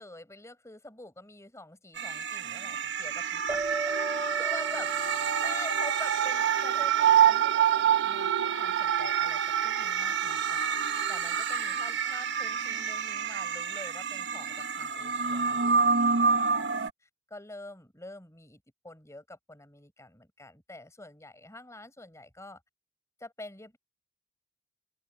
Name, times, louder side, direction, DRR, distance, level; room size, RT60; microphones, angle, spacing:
voice 1, 0.0-3.6 4.1-4.9 5.4-10.6 11.1-22.6 23.2-23.8, left 2 dB, 15° left, 6.3 m, -46 dB
sound 1, 2.0-16.9, right 7 dB, 60° right, 1.1 m, -27 dB
sound 2, 3.5-6.5, right 3 dB, 15° right, 1.8 m, -37 dB
open air
head